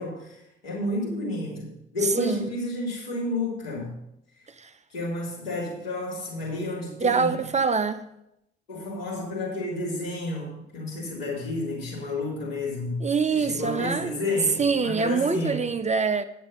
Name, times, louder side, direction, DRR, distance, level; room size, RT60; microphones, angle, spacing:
voice 1, 0.0-3.9 4.9-7.4 8.7-13.0 13.3-15.6, left 2 dB, 85° left, 3.1 m, -31 dB
voice 2, 7.0-8.0 13.0-14.1 14.6-16.2, right 5 dB, 25° right, 0.7 m, -24 dB
9.6 x 7.4 x 5.5 m
figure-of-eight pair, 50°, 30 cm